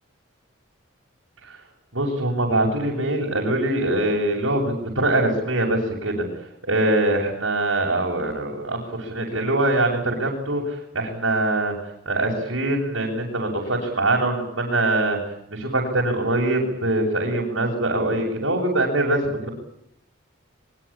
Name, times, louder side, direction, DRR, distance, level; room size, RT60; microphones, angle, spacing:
voice 1, 1.9-6.3 6.7-11.7 12.1-15.2 15.5-19.5, right 2 dB, 80° right, -3 dB, 7.3 m, -23 dB
25.0 x 23.5 x 8.7 m, 0.75 s
head